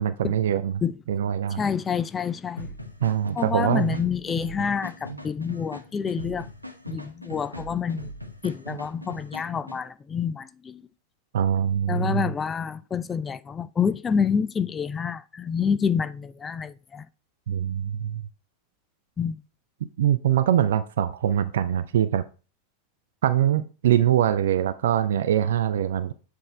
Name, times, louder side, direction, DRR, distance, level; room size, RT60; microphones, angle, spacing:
voice 1, 0.0-0.7 1.1-1.6 3.0-4.0 11.3-12.2 17.5-18.2 20.0-22.2 23.2-26.1, right 10 dB, 60° right, 0.4 m, -23 dB
voice 2, 1.6-2.7 3.4-6.5 6.9-8.1 8.4-10.8 11.9-17.0 19.2-19.4, left 6 dB, 20° left, 0.3 m, -27 dB
sound 1, 2.6-9.8, equal, 90° right, 0.7 m, -40 dB
7.6 x 3.5 x 4.2 m
figure-of-eight pair, 90°, 0 cm